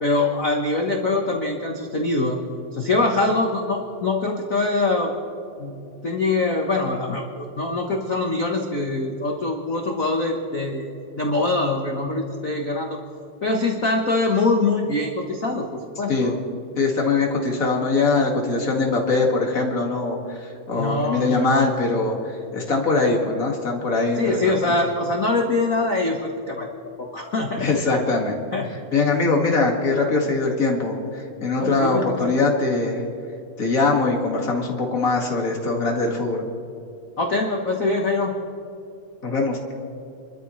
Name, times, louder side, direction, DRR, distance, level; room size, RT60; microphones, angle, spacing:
voice 1, 0.0-2.4 2.7-5.1 5.6-5.8 6.0-10.9 11.2-13.0 13.4-15.7 16.0-16.4 20.7-21.7 24.2-26.7 27.0-27.8 28.5-28.7 31.6-32.4 37.2-38.4, left 2 dB, 90° left, 1 dB, 0.7 m, -23 dB
voice 2, 16.8-24.7 27.6-28.4 28.9-33.0 33.6-36.5 39.2-39.7, left 3 dB, 30° left, 0 dB, 2.0 m, -22 dB
27.5 x 13.0 x 3.2 m, 2.7 s
omnidirectional pair, 3.4 m